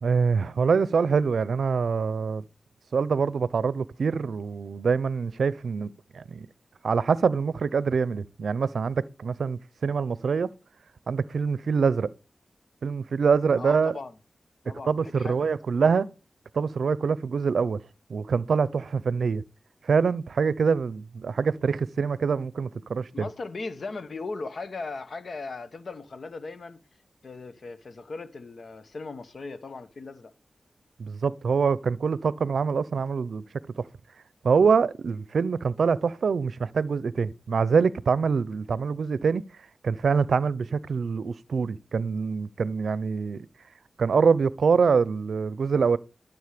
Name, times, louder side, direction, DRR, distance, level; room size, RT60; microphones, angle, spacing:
voice 1, 0.0-2.4 2.9-6.5 6.8-10.5 11.1-12.1 12.8-13.9 14.9-16.1 16.5-17.8 18.1-19.4 19.8-23.3 31.0-33.4 33.8-33.9 34.4-39.4 39.8-43.5 44.0-46.0, right 5 dB, 85° right, 0.5 m, -25 dB
voice 2, 13.6-14.1 14.6-15.5 23.1-26.8 27.2-30.3, left 3 dB, 70° left, 1.1 m, -38 dB
13.0 x 7.2 x 5.0 m
cardioid pair, 50°, 0 cm